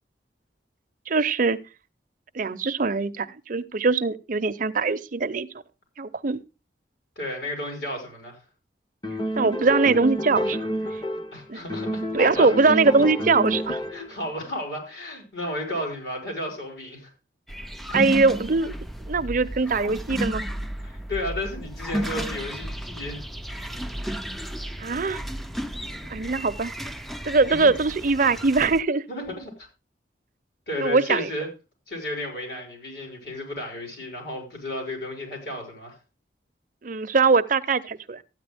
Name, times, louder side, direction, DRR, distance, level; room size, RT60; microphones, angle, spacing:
voice 1, 1.1-1.6 2.3-5.5 6.0-6.4 9.3-10.7 11.5-11.6 12.1-13.8 17.9-18.7 19.1-20.4 24.8-25.2 26.1-26.7 27.2-29.0 30.8-31.3 36.8-38.2, right 4 dB, 50° right, 0.6 m, -22 dB
voice 2, 7.2-8.4 11.3-12.8 13.9-17.1 20.8-23.2 27.5-27.7 29.1-29.5 30.7-31.5 31.9-36.0, left 1 dB, 70° left, 5.3 m, -33 dB
sound 1, 9.0-11.4 11.7-14.1, equal, 25° left, 0.9 m, -29 dB
sound 2, 17.5-28.8, equal, ahead, 0.5 m, -33 dB
13.5 x 9.4 x 3.4 m
head